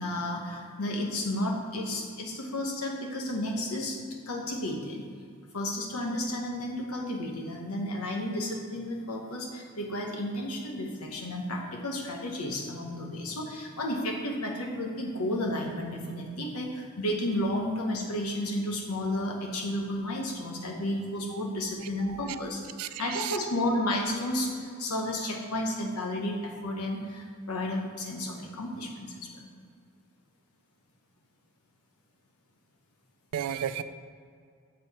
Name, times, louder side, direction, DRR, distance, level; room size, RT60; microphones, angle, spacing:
voice 1, 0.0-4.0 4.3-5.0 5.5-22.6 23.0-29.5, left 1 dB, 85° left, 0 dB, 1.1 m, -32 dB
voice 2, 21.8-22.4 22.8-23.4 33.3-33.8, right 10 dB, 80° right, 12 dB, 0.4 m, -34 dB
7.6 x 4.3 x 4.2 m, 2.2 s
head